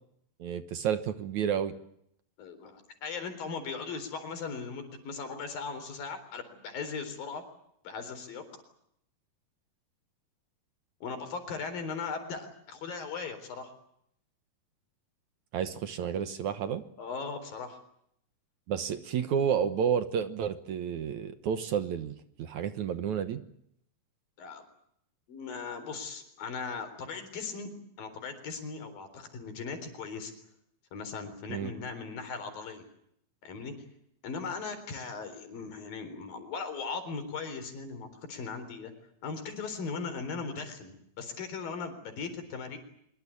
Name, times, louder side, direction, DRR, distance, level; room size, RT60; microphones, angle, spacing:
voice 1, 0.4-1.7 15.5-16.8 18.7-23.4 31.5-31.7, right 8 dB, 65° right, 11 dB, 2.3 m, -31 dB
voice 2, 2.4-7.4 7.8-8.4 11.0-13.7 17.0-17.8 24.4-24.6 25.3-30.3 30.9-32.8 33.4-33.7 34.2-38.9 39.2-42.8, left 5 dB, 75° left, 9 dB, 5.7 m, -38 dB
24.5 x 22.5 x 8.5 m, 0.72 s
omnidirectional pair, 4.1 m